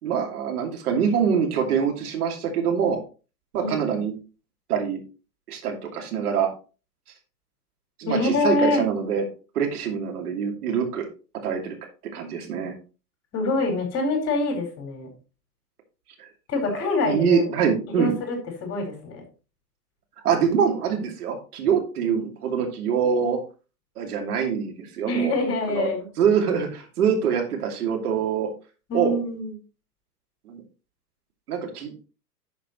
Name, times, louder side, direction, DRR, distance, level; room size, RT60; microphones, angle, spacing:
voice 1, 0.0-3.0 3.5-4.1 4.7-5.0 5.5-6.5 8.0-9.2 9.5-11.1 11.4-11.8 12.1-12.7 16.2-16.3 17.0-18.1 20.2-23.4 24.0-25.3 25.7-25.9 26.2-28.5 28.9-29.1 30.5-30.6 31.5-32.1, right 7 dB, 65° right, 2 dB, 2.6 m, -24 dB
voice 2, 8.0-8.8 13.3-15.1 16.5-17.4 17.9-19.2 25.1-26.1 28.9-29.5, left 2 dB, 30° left, 1 dB, 4.5 m, -25 dB
11.0 x 6.5 x 3.1 m, 0.33 s
figure-of-eight pair, 100°, 49 cm